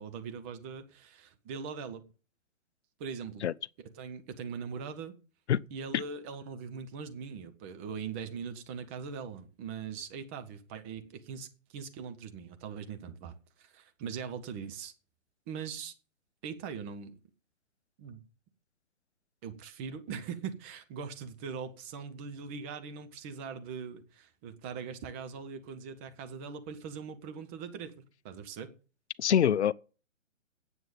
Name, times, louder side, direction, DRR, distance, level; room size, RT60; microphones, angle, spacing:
voice 1, 0.0-2.0 3.0-3.5 3.8-5.2 5.7-14.9 15.5-15.9 16.4-17.1 18.0-18.2 19.4-28.7, right 6 dB, 10° right, 0.5 m, -41 dB
voice 2, 29.2-29.7, left 9 dB, 60° left, 0.6 m, -24 dB
9.4 x 7.9 x 9.0 m
figure-of-eight pair, 140°, 39 cm